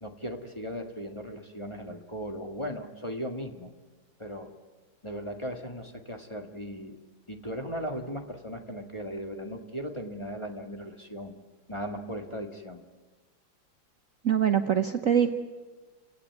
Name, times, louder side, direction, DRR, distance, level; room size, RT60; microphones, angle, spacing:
voice 1, 0.0-3.7 4.2-4.5 5.0-7.0 7.3-11.4 11.7-12.8, equal, 15° left, 3 dB, 1.8 m, -37 dB
voice 2, 14.2-15.3, right 8 dB, 50° right, 7 dB, 1.1 m, -23 dB
29.5 x 17.0 x 9.5 m, 1.3 s
omnidirectional pair, 2.1 m